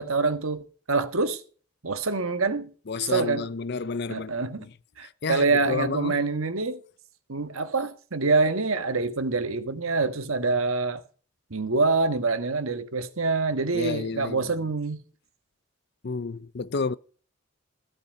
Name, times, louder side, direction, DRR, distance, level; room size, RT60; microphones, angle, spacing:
voice 1, 0.0-1.4 1.8-2.7 3.1-3.5 4.1-4.7 5.0-6.8 7.3-11.0 11.5-15.0, right 3 dB, 80° right, 1.5 m, -26 dB
voice 2, 2.9-4.3 5.2-6.3 13.7-14.5 16.0-17.0, left 4 dB, 50° left, 0.5 m, -30 dB
15.0 x 8.3 x 5.2 m
head